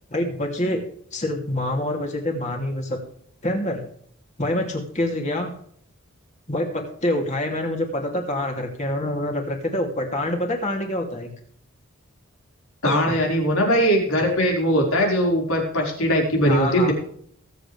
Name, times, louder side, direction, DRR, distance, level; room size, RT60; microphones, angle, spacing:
voice 1, 0.1-0.8 1.1-3.0 3.4-3.8 4.4-5.5 6.5-11.3 12.8-13.1 16.4-16.9, left 1 dB, 35° left, 2 dB, 2.9 m, -26 dB
voice 2, 12.8-16.9, equal, 85° left, 0 dB, 4.9 m, -20 dB
22.0 x 7.9 x 3.4 m, 0.63 s
head